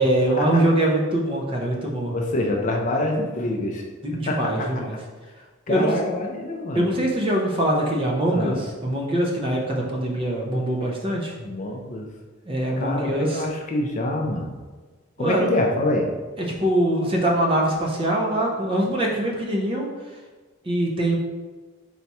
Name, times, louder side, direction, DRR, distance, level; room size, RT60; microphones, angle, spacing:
voice 1, 0.0-2.2 4.0-5.0 5.7-5.9 6.7-11.4 12.5-13.4 15.2-15.5 16.6-19.9 20.6-21.2, right 1 dB, 25° right, -1 dB, 0.5 m, -23 dB
voice 2, 2.1-3.8 4.3-4.7 5.7-6.9 8.3-8.6 10.8-10.9 11.4-12.1 12.8-14.5 15.2-16.1, left 1 dB, 35° left, 1 dB, 0.4 m, -26 dB
4.1 x 2.3 x 4.1 m, 1.3 s
head